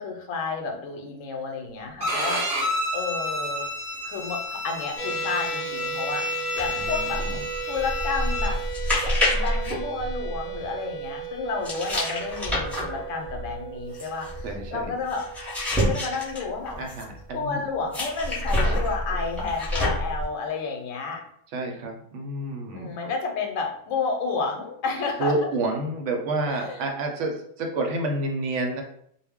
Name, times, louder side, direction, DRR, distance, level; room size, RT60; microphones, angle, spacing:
voice 1, 0.0-3.7 4.0-6.2 6.5-7.2 7.7-8.6 9.3-15.3 15.8-16.8 17.3-21.2 22.7-25.3 26.5-26.8, left 4 dB, 75° left, 2 dB, 0.9 m, -31 dB
Bowed string instrument, 2.0-8.5, left 2 dB, 40° right, 0.6 m, -30 dB
sound 1, 5.0-17.3, right 7 dB, 45° left, 0.7 m, -36 dB
sound 2, 6.5-10.7 11.6-17.2 17.9-20.2, left 1 dB, ahead, 0.7 m, -28 dB
voice 2, 6.8-7.4 14.4-14.9 16.8-17.6 18.6-18.8 21.5-22.9 25.2-28.8, right 2 dB, 70° right, 2 dB, 0.8 m, -29 dB
2.3 x 2.0 x 3.5 m, 0.68 s
omnidirectional pair, 1.4 m